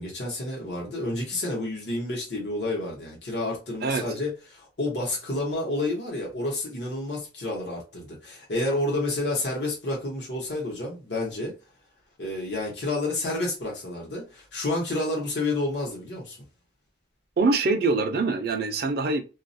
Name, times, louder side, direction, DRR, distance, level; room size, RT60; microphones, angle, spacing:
voice 1, 0.0-11.5 12.2-16.4, left 2 dB, 75° left, 0.9 m, -30 dB
voice 2, 17.4-19.2, right 3 dB, 60° right, 0.4 m, -24 dB
2.3 x 2.0 x 2.6 m
head